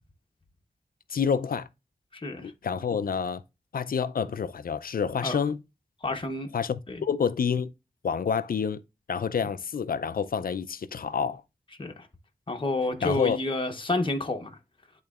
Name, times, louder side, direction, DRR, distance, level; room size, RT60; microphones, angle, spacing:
voice 1, 1.1-1.7 2.4-3.4 3.7-5.6 6.5-7.7 8.0-8.8 9.1-11.4 13.0-13.4, left 6 dB, 75° left, 0.4 m, -28 dB
voice 2, 2.1-2.5 5.2-5.4 6.0-6.5 6.9-7.0 11.8-12.1 12.5-14.6, left 2 dB, 35° left, 0.9 m, -29 dB
10.5 x 3.8 x 2.4 m
wide cardioid pair, 90°, 15 cm